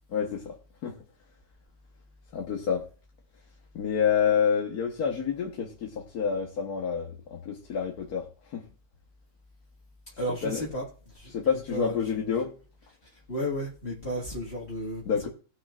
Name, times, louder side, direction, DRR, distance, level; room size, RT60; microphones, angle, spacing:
voice 1, 0.1-0.5 0.8-0.9 2.3-2.8 3.7-8.2 8.5-8.6 10.4-10.7 11.3-12.5 15.1-15.3, left 7 dB, 85° left, 1 dB, 1.7 m, -28 dB
voice 2, 10.2-10.9 11.1-11.3 11.7-12.0 13.3-15.0, equal, 45° left, -4 dB, 2.0 m, -33 dB
19.0 x 6.4 x 2.4 m, 0.37 s
omnidirectional pair, 1.6 m